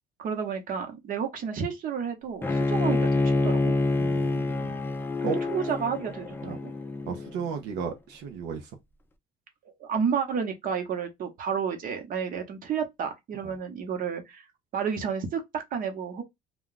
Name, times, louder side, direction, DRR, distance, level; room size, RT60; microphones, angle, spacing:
voice 1, 0.2-3.7 5.2-6.7 9.8-14.5 14.7-16.2, right 7 dB, 55° right, 0.9 m, -31 dB
Bowed string instrument, 2.4-7.5, left 2 dB, 10° left, 0.4 m, -27 dB
voice 2, 4.0-4.8 5.2-5.4 6.4-6.6 7.1-8.7 13.4-13.5, right 6 dB, 90° right, 0.6 m, -34 dB
2.3 x 2.3 x 3.8 m
cardioid pair, 110°, 17 cm